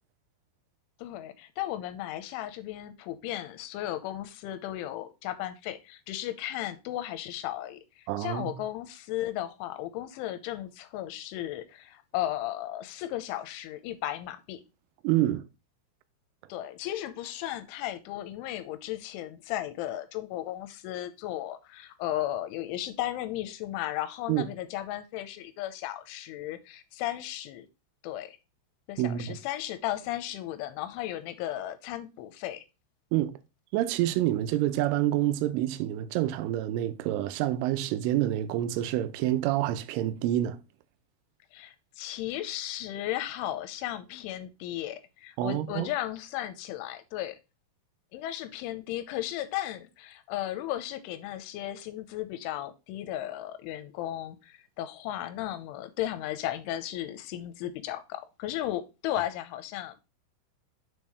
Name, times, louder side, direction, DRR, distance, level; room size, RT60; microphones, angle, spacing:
voice 1, 1.0-14.6 16.5-27.7 28.0-28.4 28.9-32.6 41.5-47.4 48.1-60.0, left 13 dB, 85° left, 3.2 m, -35 dB
voice 2, 8.1-8.6 15.0-15.5 24.3-24.5 29.0-29.4 33.1-33.4 33.7-40.6 45.4-45.9, right 13 dB, 90° right, 3.2 m, -27 dB
7.0 x 5.5 x 3.1 m
omnidirectional pair, 5.5 m